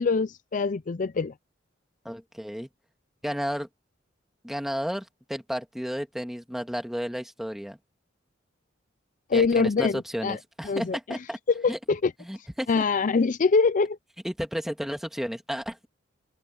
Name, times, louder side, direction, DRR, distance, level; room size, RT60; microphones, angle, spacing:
voice 1, 0.0-1.3 9.3-10.4 10.7-11.2 11.6-12.1 12.7-14.0, left 4 dB, 45° left, 0.5 m, -24 dB
voice 2, 2.1-2.7 3.2-3.7 4.4-7.8 9.3-11.4 11.7-11.8 12.2-12.8 14.2-15.9, equal, ahead, 1.8 m, -32 dB
head